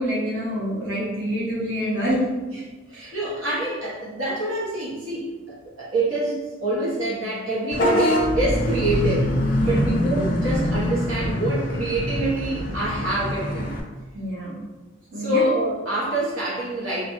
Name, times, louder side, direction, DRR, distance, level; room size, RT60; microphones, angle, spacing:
voice 1, 0.0-2.2 2.9-3.1 9.5-10.1 14.1-14.6 15.1-15.5, equal, 60° right, -8 dB, 1.1 m, -27 dB
voice 2, 2.9-13.7 15.1-17.0, right 1 dB, 80° right, -7 dB, 1.1 m, -26 dB
Vehicle horn car horn honking / Bus, 7.7-13.8, left 1 dB, 40° left, 0.5 m, -24 dB
3.6 x 2.3 x 3.1 m, 1.2 s
head